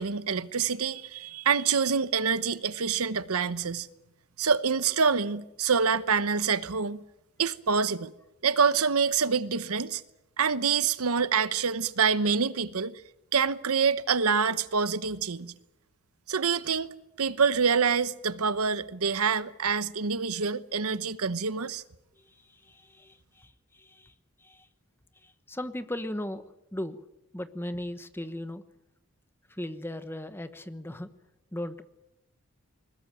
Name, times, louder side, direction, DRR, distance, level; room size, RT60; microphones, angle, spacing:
voice 1, 0.0-3.9 4.4-7.0 7.4-8.1 8.4-10.0 10.4-13.0 13.3-15.5 16.3-16.9 17.2-21.8, right 6 dB, 80° right, 0.9 m, -26 dB
voice 2, 22.2-24.7 25.1-26.4 26.7-27.0 27.3-28.6 29.5-31.1 31.5-31.8, left 1 dB, 10° left, 1.1 m, -38 dB
21.0 x 21.0 x 9.0 m
head